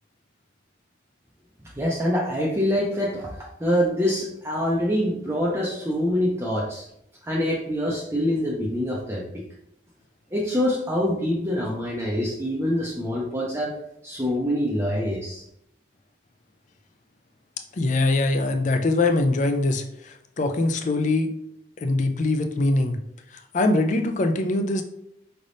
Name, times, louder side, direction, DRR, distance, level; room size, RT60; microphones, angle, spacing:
voice 1, 1.8-3.3 3.6-6.9 7.2-9.2 10.3-13.8 14.0-15.4, equal, 15° right, -5 dB, 0.5 m, -25 dB
voice 2, 17.7-21.3 21.8-23.0 23.3-24.8, left 2 dB, 40° left, 6 dB, 0.4 m, -23 dB
5.1 x 3.4 x 2.6 m, 0.77 s
head